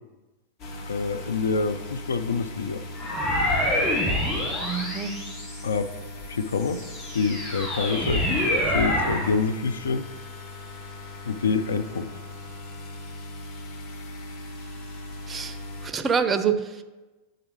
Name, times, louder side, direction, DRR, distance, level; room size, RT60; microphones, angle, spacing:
sound 1, 0.6-15.9, left 2 dB, 40° left, 0.8 m, -39 dB
voice 1, 0.9-2.8 5.6-5.9 6.3-6.8 7.1-8.4 8.7-10.1 11.3-12.1, left 4 dB, 70° left, 11 dB, 0.4 m, -26 dB
sound 2, 3.0-5.9 6.5-9.3, left 1 dB, 20° left, 2.2 m, -26 dB
voice 2, 4.6-5.1 15.3-15.6 15.8-16.8, right 6 dB, 20° right, 10 dB, 0.5 m, -26 dB
9.9 x 3.8 x 3.1 m, 1.2 s
figure-of-eight pair, 90°, 0 cm